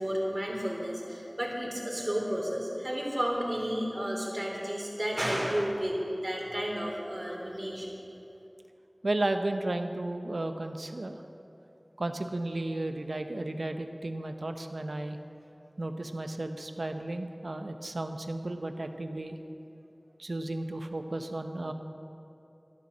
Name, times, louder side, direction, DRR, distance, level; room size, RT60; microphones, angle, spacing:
voice 1, 0.0-7.9, equal, 35° right, -2 dB, 3.5 m, -32 dB
voice 2, 9.0-11.2 12.0-15.2 15.8-19.4 20.2-21.7, right 2 dB, 90° right, 7 dB, 0.8 m, -33 dB
12.5 x 11.5 x 7.2 m, 2.8 s
wide cardioid pair, 45°, 0 cm